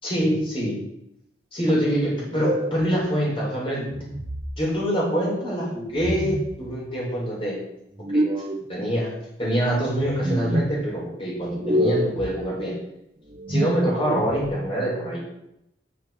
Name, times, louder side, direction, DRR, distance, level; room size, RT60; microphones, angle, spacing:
voice 1, 0.0-0.8 1.5-4.0 4.6-7.6 8.1-8.2 8.7-9.1 9.4-12.7 13.5-15.2, equal, 30° left, -5 dB, 4.9 m, -25 dB
sound 1, 2.3-2.9 3.9-4.5 5.9-6.6 8.0-8.7 9.9-10.7 11.5-12.3 13.3-14.5, equal, 30° right, 0.9 m, -27 dB
11.5 x 6.6 x 6.1 m, 0.81 s
head